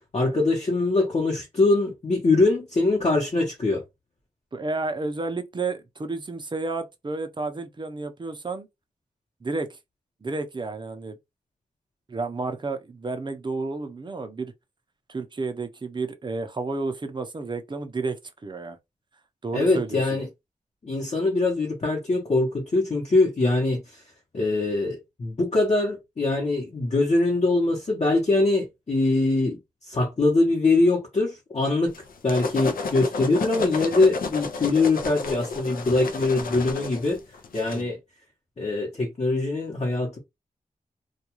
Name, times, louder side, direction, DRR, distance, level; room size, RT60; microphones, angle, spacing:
voice 1, 0.1-3.8 19.5-20.3 20.8-23.8 24.3-29.6 29.9-31.9 32.2-37.2 37.5-38.0 38.6-40.2, left 2 dB, 45° left, 0.9 m, -23 dB
voice 2, 4.5-8.7 9.4-9.8 10.2-11.2 12.1-14.5 15.1-18.2 18.4-18.8 19.4-20.2 37.7-37.9, right 3 dB, 35° right, 0.6 m, -31 dB
sound 1, 31.9-37.8, left 4 dB, 85° left, 0.5 m, -32 dB
2.3 x 2.3 x 2.9 m
wide cardioid pair, 75°, 14 cm